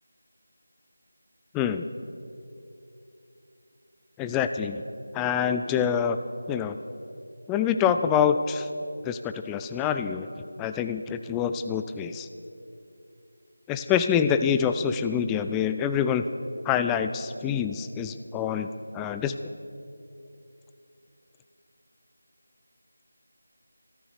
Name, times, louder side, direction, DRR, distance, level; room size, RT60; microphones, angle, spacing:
voice 1, 1.5-1.9 4.2-4.8 5.1-6.2 6.5-6.8 7.5-8.7 9.0-10.3 10.6-12.3 13.7-16.2 16.6-18.7 18.9-19.4, left 8 dB, 5° left, 9 dB, 0.3 m, -26 dB
13.5 x 13.0 x 6.6 m, 2.7 s
figure-of-eight pair, 165°, 0 cm